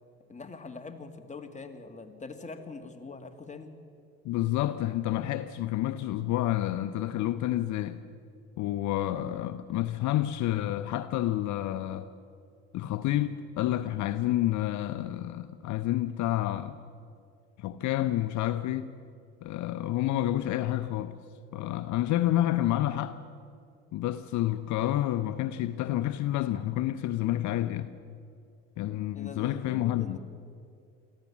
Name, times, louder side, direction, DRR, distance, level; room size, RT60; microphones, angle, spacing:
voice 1, 0.3-3.7 29.1-30.2, left 4 dB, 25° left, 2.3 m, -43 dB
voice 2, 4.2-8.0 8.6-12.1 12.7-16.8 17.6-18.9 19.4-21.1 21.5-23.2 23.9-27.9 28.8-30.2, left 13 dB, 65° left, 0.8 m, -29 dB
24.5 x 15.0 x 7.3 m
supercardioid pair, 80°, 31 cm